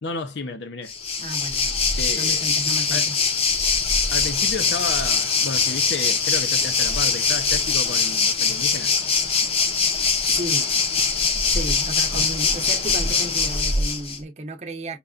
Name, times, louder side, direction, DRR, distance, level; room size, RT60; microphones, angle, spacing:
voice 1, 0.0-0.9 2.0-2.5 2.9-3.1 4.1-8.9 12.1-12.3, left 3 dB, 90° left, 0.6 m, -32 dB
Waves surf, 0.9-14.2, left 5 dB, 35° left, 0.5 m, -22 dB
voice 2, 1.2-1.8 2.2-3.2 3.6-3.8 10.3-10.7 11.4-15.0, right 2 dB, 40° right, 0.7 m, -33 dB
5.2 x 2.2 x 2.4 m
head